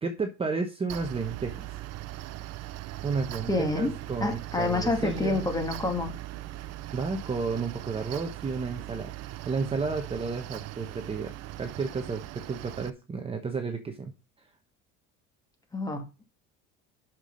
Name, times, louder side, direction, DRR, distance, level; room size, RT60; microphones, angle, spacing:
voice 1, 0.0-1.7 3.0-5.5 6.9-9.1 9.5-14.1, right 4 dB, 20° right, 4 dB, 1.1 m, -32 dB
Mechanical fan, 0.9-12.9, right 15 dB, 55° right, 0.8 m, -39 dB
voice 2, 3.5-3.9 4.2-6.1 15.7-16.2, left 2 dB, 10° left, 5 dB, 2.2 m, -28 dB
8.1 x 6.2 x 5.2 m, 0.29 s
cardioid pair, 130°, 30 cm